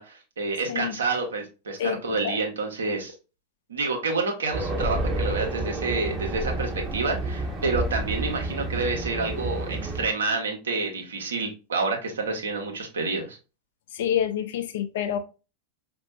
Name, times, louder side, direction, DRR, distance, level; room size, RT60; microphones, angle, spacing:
voice 1, 0.0-3.1 3.7-13.4, right 3 dB, 70° right, 1.1 m, -28 dB
Race car auto racing, 4.5-10.1, right 2 dB, 20° right, 0.9 m, -30 dB
voice 2, 13.9-15.2, left 10 dB, 55° left, 0.5 m, -27 dB
5.1 x 2.6 x 2.4 m
figure-of-eight pair, 90°, 0 cm